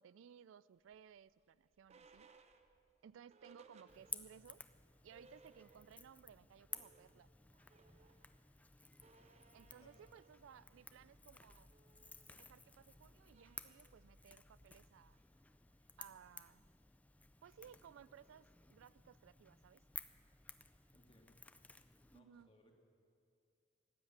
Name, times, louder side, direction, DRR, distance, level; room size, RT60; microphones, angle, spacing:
voice 1, 0.0-2.3 3.0-4.6 5.0-7.3 9.5-11.7 12.4-15.2 16.0-16.6 17.4-19.8 22.1-22.5, right 8 dB, 75° right, 19 dB, 0.3 m, -60 dB
sound 1, 0.9-4.5 4.8-4.9 5.1-6.2 6.5-17.0, right 3 dB, 35° right, 0.7 m, -68 dB
Crackle / Crack, 3.9-22.2, left 3 dB, 5° left, 0.4 m, -56 dB
voice 2, 9.5-10.1 20.9-21.4 22.1-22.7, left 1 dB, 30° left, 1 dB, 1.9 m, -69 dB
15.5 x 10.5 x 8.7 m, 2.5 s
head